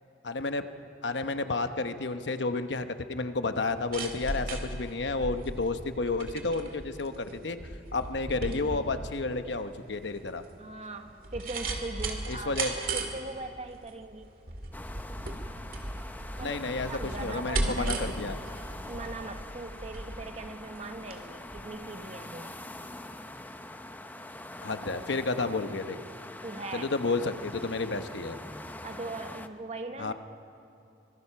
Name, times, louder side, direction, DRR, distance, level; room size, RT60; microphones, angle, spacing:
voice 1, 0.2-0.6 1.0-7.6 7.9-10.4 12.3-12.7 16.4-18.4 24.6-26.0 26.7-28.4 30.0-30.1, left 3 dB, 75° left, 9 dB, 1.0 m, -31 dB
sound 1, 3.6-21.2 21.5-21.6, right 2 dB, 55° right, 2.2 m, -36 dB
voice 2, 10.6-14.3 16.4-18.4 18.7-22.5 26.4-26.9 28.8-30.1, right 2 dB, 40° right, 6 dB, 1.2 m, -40 dB
sound 2, 14.7-29.5, left 1 dB, 10° left, 0.7 m, -44 dB
25.0 x 20.0 x 5.8 m, 2.8 s
head